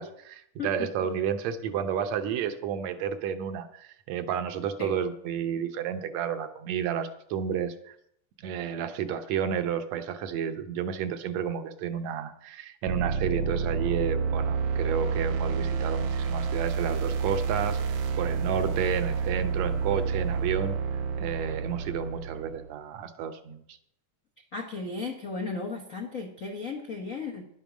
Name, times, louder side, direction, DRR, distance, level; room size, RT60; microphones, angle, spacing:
voice 1, 0.0-8.0 8.4-20.7 21.2-23.8, right 8 dB, 70° right, 9 dB, 1.9 m, -31 dB
sound 1, 12.9-22.7, right 5 dB, 85° right, 2.3 m, -29 dB
voice 2, 24.5-27.5, left 4 dB, 65° left, 0 dB, 0.8 m, -35 dB
10.5 x 9.1 x 6.1 m, 0.71 s
omnidirectional pair, 3.4 m